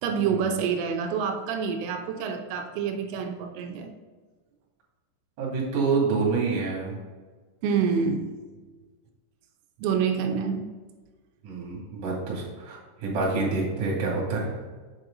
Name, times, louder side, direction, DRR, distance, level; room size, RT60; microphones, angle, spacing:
voice 1, 0.0-3.9 7.6-8.3 9.8-10.6, right 6 dB, 80° right, 4 dB, 3.1 m, -27 dB
voice 2, 5.4-6.9 11.4-14.5, right 4 dB, 45° right, -4 dB, 3.1 m, -27 dB
8.1 x 6.3 x 3.7 m, 1.4 s
omnidirectional pair, 5.8 m